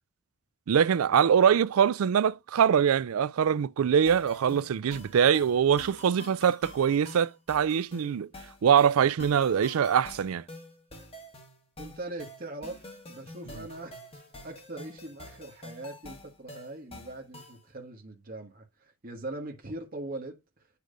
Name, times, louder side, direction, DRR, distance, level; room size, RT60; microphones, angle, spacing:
voice 1, 0.7-8.3 8.6-10.4, right 8 dB, 85° right, 0.4 m, -23 dB
sound 1, 4.1-17.7, left 1 dB, 25° left, 1.6 m, -47 dB
voice 2, 11.8-20.7, right 2 dB, 40° right, 1.3 m, -41 dB
8.5 x 3.1 x 5.0 m
head